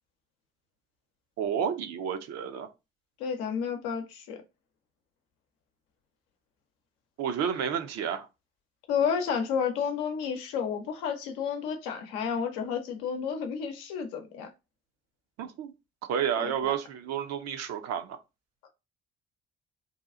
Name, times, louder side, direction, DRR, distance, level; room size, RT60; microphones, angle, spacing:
voice 1, 1.4-2.7 7.2-8.3 15.4-15.7 16.1-18.2, right 8 dB, 55° right, 0.6 m, -30 dB
voice 2, 3.2-4.4 8.9-14.5 16.4-16.7 18.6-18.7, left 7 dB, 70° left, 0.7 m, -31 dB
2.8 x 2.3 x 3.6 m
figure-of-eight pair, 45°, 31 cm